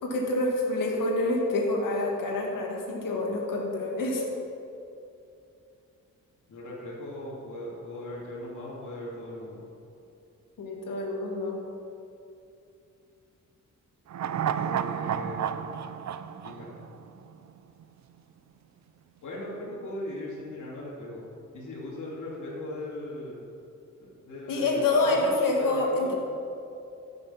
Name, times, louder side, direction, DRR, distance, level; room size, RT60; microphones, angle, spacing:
voice 1, 0.0-4.2 10.6-11.6 24.5-26.1, left 2 dB, 85° left, 0 dB, 2.2 m, -27 dB
voice 2, 6.5-9.6 14.5-15.6 16.4-16.7 19.2-21.3 21.5-23.4 24.0-26.1, left 1 dB, 65° left, -7 dB, 2.9 m, -38 dB
sound 1, 14.1-17.5 17.8-17.9, right 8 dB, 60° right, 0.5 m, -31 dB
14.5 x 6.8 x 5.8 m, 2.7 s
cardioid pair, 90°, 32 cm